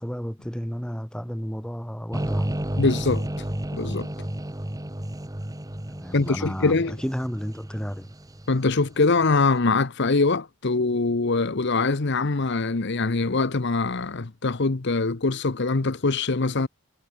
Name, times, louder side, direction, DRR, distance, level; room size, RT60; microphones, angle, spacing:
voice 1, 0.0-2.5 5.9-8.1, equal, 5° left, 2.1 m, -32 dB
sound 1, 2.1-9.2, right 1 dB, 15° right, 1.2 m, -32 dB
voice 2, 2.8-3.3 3.7-4.1 6.1-7.0 8.5-16.7, left 3 dB, 55° left, 0.9 m, -23 dB
head